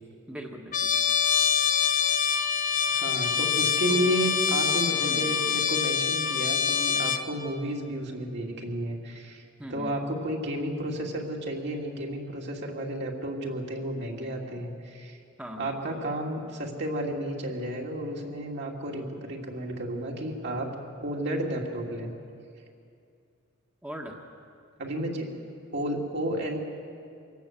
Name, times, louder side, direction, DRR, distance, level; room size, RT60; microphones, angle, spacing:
voice 1, 0.3-1.0 3.9-4.2 5.0-5.3 9.6-9.9 14.2-14.3 15.4-15.7 23.8-24.1, equal, 5° right, 0 dB, 1.4 m, -40 dB
Trumpet, 0.7-7.3, left 7 dB, 40° left, 1.0 m, -25 dB
voice 2, 2.9-9.4 9.7-15.2 15.6-20.7 21.0-22.1 24.8-25.3 25.7-26.6, right 1 dB, 55° right, -1 dB, 2.9 m, -32 dB
25.0 x 17.5 x 7.5 m, 2.4 s
head